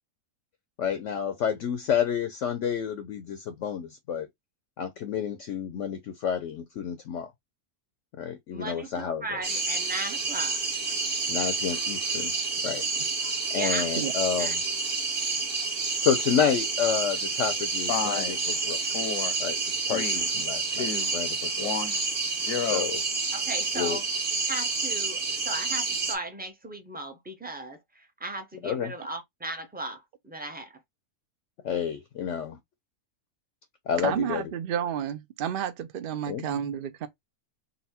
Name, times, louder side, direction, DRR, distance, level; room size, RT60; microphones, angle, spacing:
voice 1, 0.8-4.3 4.8-7.3 8.2-9.4 11.3-12.3 12.6-12.8 13.5-14.6 15.6-18.8 19.4-19.6 19.9-21.7 22.6-23.0 23.7-24.0 28.6-28.9 31.6-32.6 33.9-34.5 36.3-36.5, left 8 dB, 65° left, 0.8 m, -30 dB
voice 2, 8.5-10.6 13.5-14.1 14.4-14.5 23.3-24.0 24.5-30.7, right 2 dB, 10° right, 0.4 m, -37 dB
sound 1, 9.4-26.2, right 4 dB, 40° right, 1.2 m, -29 dB
Male speech man speaking, 17.9-18.4 18.9-19.3 19.9-20.3 20.7-21.2 21.6-22.0 22.4-22.9, left 7 dB, 80° left, 1.2 m, -31 dB
voice 3, 34.0-37.1, right 9 dB, 65° right, 0.5 m, -31 dB
4.1 x 2.1 x 4.1 m
omnidirectional pair, 1.6 m